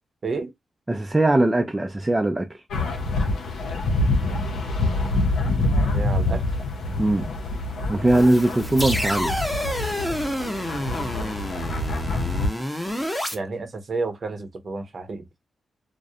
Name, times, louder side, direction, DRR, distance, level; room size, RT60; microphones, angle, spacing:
voice 1, 0.9-2.6 7.0-7.3 7.9-9.4, right 1 dB, 20° right, 0.4 m, -20 dB
sound 1, 2.7-12.5, left 2 dB, 85° left, 0.6 m, -26 dB
voice 2, 5.6-6.4 10.1-10.2 13.3-15.3, right 3 dB, 55° right, 0.7 m, -31 dB
sound 2, 8.1-13.3, equal, 5° left, 0.7 m, -29 dB
2.3 x 2.1 x 2.7 m
supercardioid pair, 50°, 0 cm